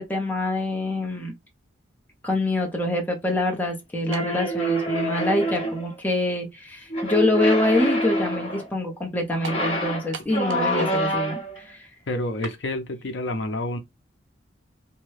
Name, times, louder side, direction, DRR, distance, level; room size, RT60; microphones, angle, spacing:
voice 1, 0.0-1.3 2.2-11.9, left 1 dB, 10° left, 0.7 m, -25 dB
sound 1, 4.1-5.9 6.9-8.7 9.3-11.6, equal, 30° left, 0.9 m, -26 dB
sound 2, 4.1-4.4 5.3-5.4 9.4-9.7 10.1-10.8 11.1-11.2 12.4-12.6, right 6 dB, 80° right, 0.5 m, -37 dB
voice 2, 12.1-13.8, left 1 dB, 70° left, 0.6 m, -28 dB
2.7 x 2.2 x 3.1 m
head